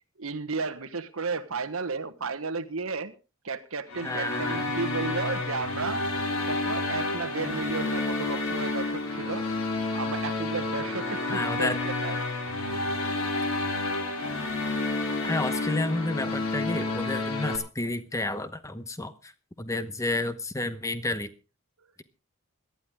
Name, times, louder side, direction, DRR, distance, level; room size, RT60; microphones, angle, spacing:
voice 1, 0.2-3.1 3.4-6.0 6.4-9.5 9.9-12.2, right 4 dB, 65° right, 10 dB, 1.2 m, -33 dB
sound 1, 3.9-17.6, left 2 dB, 70° left, 3.3 m, -30 dB
voice 2, 4.0-4.7 11.3-11.8 15.2-19.3 19.6-21.3, left 2 dB, 15° left, 12 dB, 1.0 m, -31 dB
18.0 x 12.0 x 3.7 m, 0.32 s
head